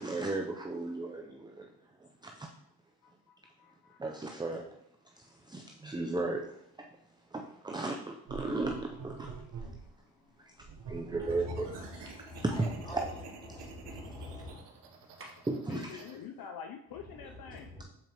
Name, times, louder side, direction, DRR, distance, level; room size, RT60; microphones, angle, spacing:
voice 1, 0.0-1.7 2.0-2.5 4.0-4.7 5.2-6.9 7.3-9.3 10.9-11.7 12.4-13.1 13.5-13.6 15.5-16.0, right 2 dB, 10° right, 0.5 m, -35 dB
voice 2, 3.0-4.0 9.2-9.3 15.6-17.7, left 7 dB, 55° left, 0.6 m, -47 dB
sound 1, 8.3-9.9 10.6-16.1, right 5 dB, 65° right, 1.1 m, -47 dB
voice 3, 11.2-13.2 13.5-14.6 17.3-17.8, left 2 dB, 10° left, 2.4 m, -44 dB
sound 2, 12.0-12.3 15.2-15.7, right 1 dB, 30° right, 1.6 m, -52 dB
7.4 x 4.4 x 3.0 m
supercardioid pair, 70°, 45 cm